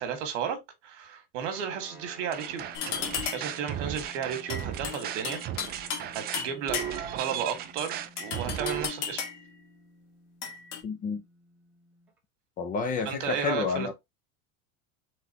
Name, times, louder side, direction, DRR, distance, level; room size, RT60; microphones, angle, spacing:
voice 1, 0.0-2.6 3.3-5.4 5.7-5.8 6.1-6.8 7.2-9.2 13.0-13.9, right 7 dB, 75° right, 1.8 m, -33 dB
sound 1, 1.5-12.2, equal, 5° right, 1.8 m, -53 dB
sound 2, 2.3-8.9, right 10 dB, 25° right, 0.4 m, -36 dB
sound 3, 2.7-3.6 4.5-6.1 6.3-7.2 8.2-9.5 10.4-10.8, left 7 dB, 70° left, 1.7 m, -34 dB
voice 2, 10.8-11.2 12.6-13.9, left 5 dB, 25° left, 0.5 m, -30 dB
4.2 x 4.0 x 2.9 m
supercardioid pair, 150°, 36 cm